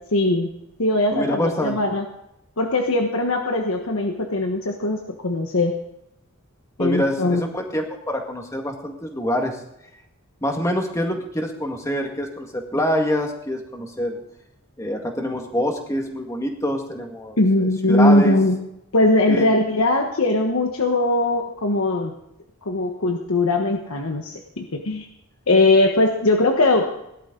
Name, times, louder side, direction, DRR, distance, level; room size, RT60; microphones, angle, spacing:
voice 1, 0.1-0.5 0.8-2.0 2.6-5.8 6.8-7.4 17.4-18.6 18.9-22.1 22.7-25.1 25.5-26.9, left 2 dB, 80° left, 3 dB, 1.3 m, -20 dB
voice 2, 1.1-1.8 6.8-9.6 10.4-14.2 14.8-18.4 19.3-19.5, equal, 15° left, 2 dB, 2.0 m, -25 dB
18.0 x 12.0 x 3.9 m, 0.83 s
head